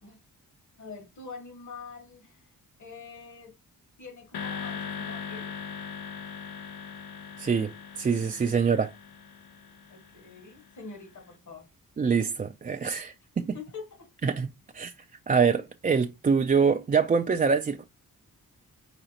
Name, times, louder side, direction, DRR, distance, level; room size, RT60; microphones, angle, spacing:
voice 1, 0.8-2.4 2.8-3.6 4.0-5.5 9.9-11.7 13.5-14.1 15.5-15.6, left 4 dB, 55° left, 1.7 m, -45 dB
sound 1, 4.3-10.7, left 7 dB, 85° left, 0.7 m, -40 dB
voice 2, 7.4-8.9 12.0-13.4 14.2-14.9 15.3-17.8, right 5 dB, 25° right, 0.3 m, -25 dB
5.0 x 3.1 x 2.9 m
cardioid pair, 75°, 36 cm